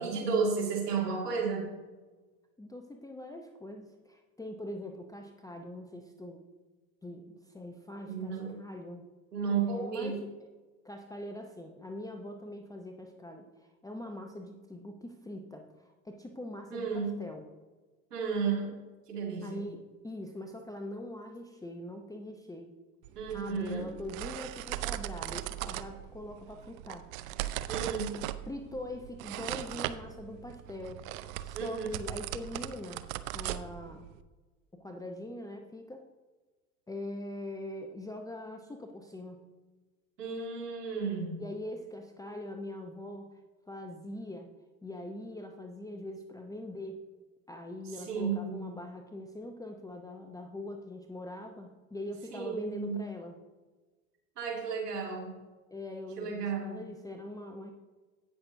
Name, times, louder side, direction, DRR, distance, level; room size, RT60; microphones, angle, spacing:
voice 1, 0.0-1.7 8.1-8.6 9.3-10.1 16.7-17.1 18.1-18.7 19.1-19.7 23.2-23.8 27.7-28.1 31.5-32.0 40.2-41.3 48.1-48.7 52.3-53.0 54.4-55.4 56.2-56.8, right 5 dB, 80° right, -2 dB, 2.3 m, -33 dB
voice 2, 2.6-6.4 7.0-9.1 9.6-10.3 10.8-17.4 19.4-22.7 23.3-27.1 28.5-31.0 31.4-33.1 33.3-34.1 34.7-36.0 36.9-39.5 41.4-43.4 43.7-44.5 44.8-47.0 47.5-53.4 55.7-57.7, left 1 dB, 10° left, 4 dB, 0.7 m, -42 dB
sound 1, 23.0-34.2, right 14 dB, 60° right, 0.6 m, -39 dB
17.5 x 6.1 x 2.7 m, 1.3 s
figure-of-eight pair, 70°, 46 cm